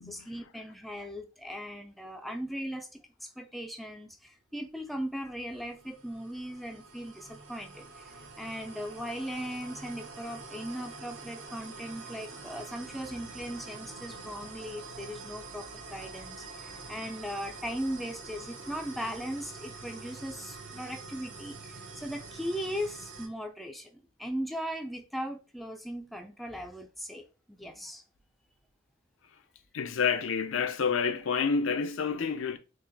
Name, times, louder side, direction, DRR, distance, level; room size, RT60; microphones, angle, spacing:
voice 1, 0.0-28.0, equal, ahead, 0.3 m, -38 dB
sound 1, 5.3-23.3, right 4 dB, 60° right, 0.7 m, -46 dB
voice 2, 29.7-32.6, left 6 dB, 70° left, 0.5 m, -29 dB
3.9 x 2.8 x 2.7 m
head